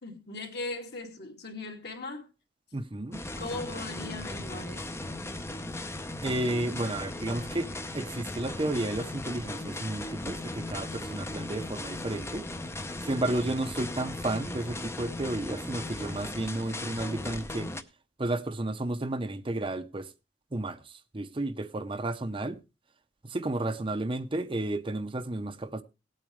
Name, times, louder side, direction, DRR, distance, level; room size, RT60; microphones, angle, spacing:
voice 1, 0.0-2.3 3.4-4.9, left 2 dB, 60° left, 2.6 m, -39 dB
voice 2, 2.7-3.2 6.2-12.5 13.0-17.7 18.2-20.1 20.5-20.8 21.1-22.6 23.3-25.8, right 2 dB, 30° right, 0.7 m, -32 dB
sound 1, 3.1-17.8, left 2 dB, 15° left, 0.7 m, -37 dB
18.0 x 8.7 x 3.2 m
head